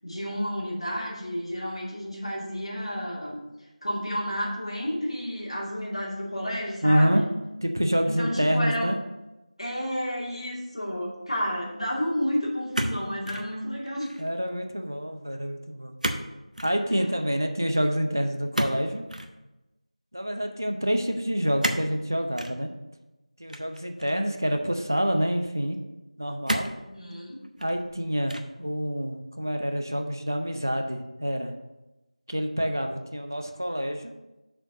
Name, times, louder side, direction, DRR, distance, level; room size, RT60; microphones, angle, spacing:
voice 1, 0.0-3.4 3.8-7.3 8.0-8.9 9.6-14.1 16.9-17.1 26.8-27.4, equal, 45° left, -5 dB, 2.4 m, -31 dB
voice 2, 6.8-7.3 7.6-9.0 14.2-15.9 16.6-19.0 20.1-22.7 23.4-25.8 26.2-26.7 27.6-31.5 32.3-34.1, equal, 30° right, 5 dB, 0.5 m, -27 dB
sound 1, 12.7-13.5 13.9-14.3 16.0-16.3 16.5-16.8 18.5-19.3 21.6-21.9 22.4-22.6 23.5-24.3 25.0-25.1 26.5-26.8 27.4-27.9 28.3-28.6, right 1 dB, 85° right, 0.9 m, -31 dB
6.5 x 4.4 x 6.5 m, 1.0 s
figure-of-eight pair, 180°, 4 cm